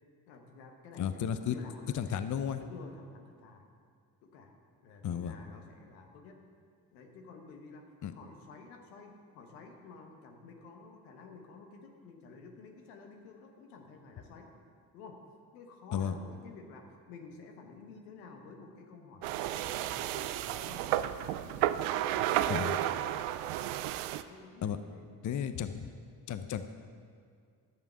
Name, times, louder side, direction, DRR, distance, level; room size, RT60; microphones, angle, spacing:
voice 1, 0.3-2.3 2.6-3.7 4.2-4.5 4.8-6.4 6.9-14.5 14.9-15.2 15.5-20.9 21.4-23.2 23.8-23.9 24.3-25.1, left 4 dB, 90° left, 2 dB, 1.2 m, -52 dB
voice 2, 1.0-1.6 1.9-2.6 5.0-5.3 8.0-8.1 15.9-16.2 22.5-22.8 24.6-24.8 25.2-25.9 26.3-26.8, left 8 dB, 40° left, 10 dB, 0.6 m, -33 dB
sound 1, 19.2-24.2, right 12 dB, 80° right, 0.5 m, -32 dB
11.0 x 7.0 x 5.6 m, 2.2 s
hypercardioid pair, 50°, 48 cm